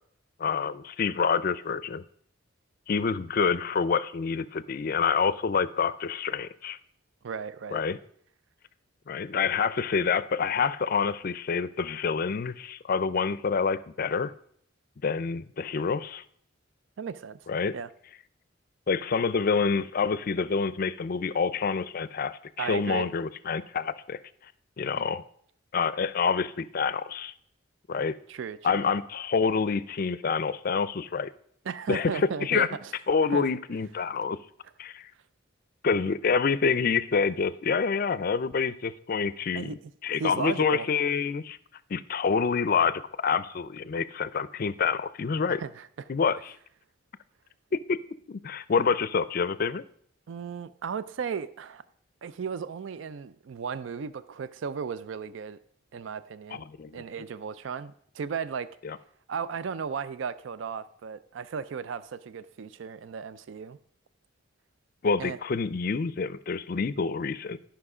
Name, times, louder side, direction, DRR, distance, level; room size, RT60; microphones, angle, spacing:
voice 1, 0.4-2.0 2.9-6.8 7.7-8.0 9.1-14.3 15.0-16.2 17.5-17.7 18.9-24.2 24.8-25.2 25.7-27.3 27.9-28.2 28.6-31.3 31.9-32.7 33.1-34.4 34.8-35.1 35.8-39.8 40.0-41.6 41.9-45.6 46.1-46.6 47.9-48.0 48.3-49.8 56.5-57.0 58.8-59.0 65.0-67.6, left 5 dB, 50° left, 16 dB, 0.4 m, -27 dB
voice 2, 7.2-7.8 17.0-17.4 17.7-17.9 22.6-23.1 25.0-25.1 28.3-28.9 31.7-32.7 33.3-33.5 39.5-39.8 40.2-40.9 45.6-45.9 50.3-51.8 52.2-55.6 55.9-56.6 56.9-58.7 59.3-63.8 65.2-65.4, right 6 dB, 75° right, 15 dB, 0.4 m, -35 dB
12.0 x 5.8 x 4.9 m, 0.64 s
head